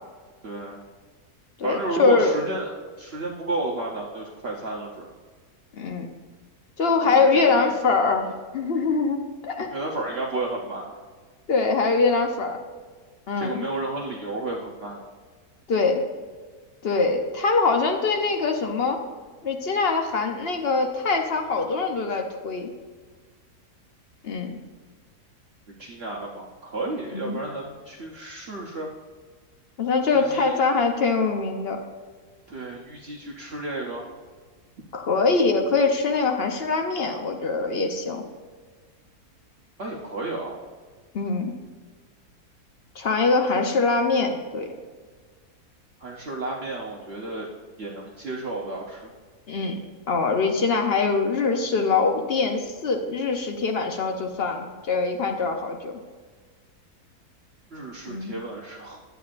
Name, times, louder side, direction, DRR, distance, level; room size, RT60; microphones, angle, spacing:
voice 1, 0.4-0.8 1.6-5.1 7.0-7.7 9.7-11.0 13.4-15.1 25.8-28.9 30.1-30.5 32.5-34.1 39.8-40.6 43.5-43.7 46.0-47.5 47.8-49.0 57.7-59.0, right 2 dB, 50° right, -3 dB, 0.9 m, -32 dB
voice 2, 1.6-2.4 5.8-6.1 6.8-8.3 8.5-9.7 11.5-12.6 13.3-13.7 15.7-16.0 16.8-19.0 19.4-22.7 24.2-24.6 27.1-27.4 29.8-31.8 34.9-38.2 41.1-41.5 43.0-44.7 49.5-49.8 50.1-55.9 58.1-58.3, left 4 dB, 50° left, 4 dB, 0.8 m, -23 dB
10.5 x 7.9 x 2.5 m, 1.5 s
omnidirectional pair, 1.7 m